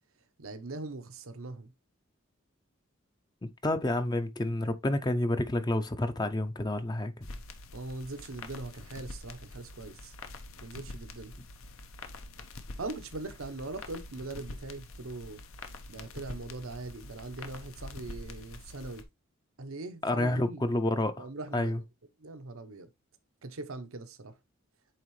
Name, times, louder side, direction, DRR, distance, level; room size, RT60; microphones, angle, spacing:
voice 1, 0.4-1.7 7.7-10.1 10.6-11.3 12.8-15.4 15.9-19.1 19.6-20.6 21.2-21.8 22.2-22.9 23.4-24.4, right 2 dB, 85° right, 0.9 m, -41 dB
voice 2, 3.4-7.1 20.0-21.3 21.5-21.8, left 1 dB, 20° left, 0.5 m, -29 dB
sound 1, 7.2-19.0, left 2 dB, 80° left, 0.9 m, -46 dB
8.8 x 3.6 x 3.1 m
head